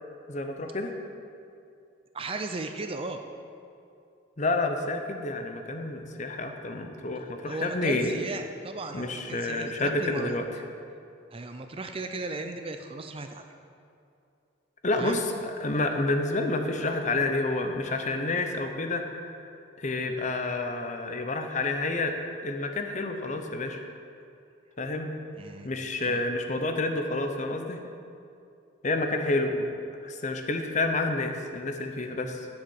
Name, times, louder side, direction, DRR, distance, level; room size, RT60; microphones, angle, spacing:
voice 1, 0.3-0.9 4.4-8.1 8.9-10.5 14.8-19.4 19.8-22.1 22.4-23.8 24.8-25.2 25.6-27.8 28.8-29.7 30.0-32.5, left 2 dB, 35° left, 5 dB, 0.7 m, -29 dB
voice 2, 2.1-3.2 7.5-10.7 11.3-13.4 15.0-15.2 25.4-25.7 26.0-26.3, right 3 dB, 25° right, 6 dB, 0.5 m, -36 dB
7.5 x 7.3 x 7.9 m, 2.5 s
head